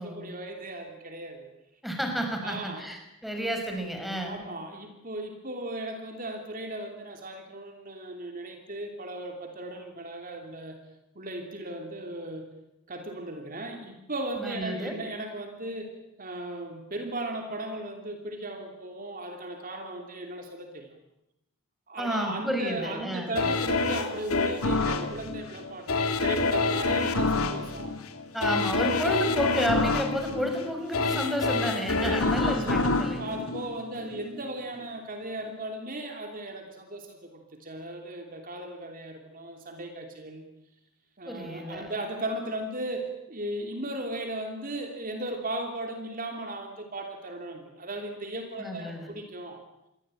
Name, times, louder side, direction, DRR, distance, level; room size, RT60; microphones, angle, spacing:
voice 1, 0.0-1.5 2.4-2.9 4.3-10.8 11.1-12.5 12.9-20.9 21.9-28.0 32.0-40.5 41.2-49.6, right 1 dB, 40° right, 4 dB, 2.9 m, -37 dB
voice 2, 1.8-4.4 14.4-15.0 22.0-23.3 27.3-27.5 28.3-33.2 41.3-41.9 48.6-49.1, equal, ahead, 3 dB, 5.7 m, -31 dB
sound 1, 23.4-34.3 34.7-34.8, left 3 dB, 75° left, 2.8 m, -27 dB
29.0 x 22.5 x 9.0 m, 0.87 s
head